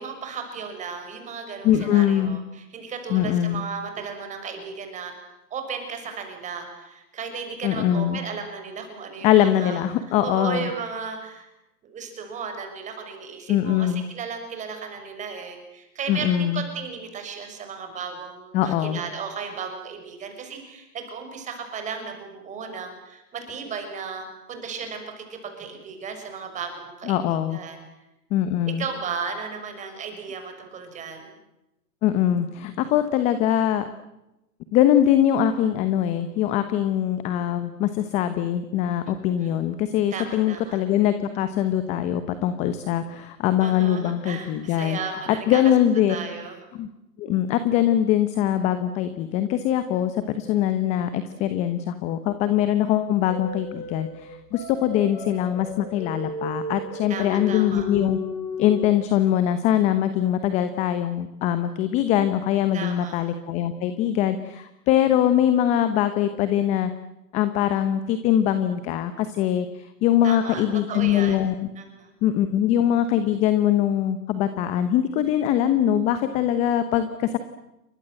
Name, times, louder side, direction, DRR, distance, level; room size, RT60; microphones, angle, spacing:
voice 1, 0.0-5.1 5.5-9.9 10.2-11.5 11.8-27.8 28.8-31.3 39.4-39.5 40.1-40.8 43.6-45.6 46.1-46.6 57.1-57.9 62.7-63.2 70.2-71.4 71.7-72.1, right 6 dB, 15° right, 6 dB, 6.3 m, -35 dB
voice 2, 1.6-2.4 3.1-3.6 7.6-8.2 9.2-10.7 13.5-14.0 16.1-16.6 18.5-19.0 27.1-27.6 28.3-28.8 32.0-33.8 34.7-45.0 45.3-46.2 46.7-46.9 47.2-58.2 58.6-66.9 67.3-71.5 72.2-77.4, left 11 dB, 15° left, 11 dB, 1.0 m, -22 dB
sound 1, 53.3-58.9, left 3 dB, 35° left, 5.4 m, -34 dB
29.5 x 25.0 x 7.8 m, 0.92 s
hypercardioid pair, 145°, 49 cm